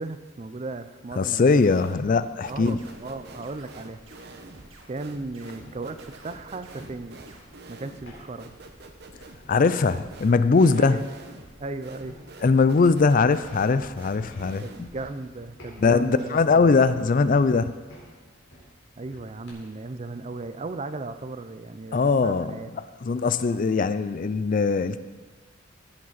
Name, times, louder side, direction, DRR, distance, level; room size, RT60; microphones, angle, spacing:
voice 1, 0.0-1.7 2.5-4.0 4.9-7.2 7.7-8.6 10.8-11.0 11.6-12.2 14.6-16.7 17.0-17.3 19.0-22.7, right 3 dB, 35° right, 11 dB, 0.5 m, -36 dB
voice 2, 1.2-2.8 9.5-11.0 12.4-14.9 15.8-17.7 21.9-22.6 23.0-25.0, left 4 dB, 45° left, 13 dB, 0.4 m, -21 dB
sound 1, 1.5-2.2 2.4-15.1, right 2 dB, 55° right, 0.9 m, -47 dB
sound 2, 2.3-19.5, equal, 85° left, 4.0 m, -52 dB
sound 3, 2.5-7.4, right 2 dB, 90° right, 1.8 m, -51 dB
16.0 x 7.6 x 4.1 m, 1.4 s
head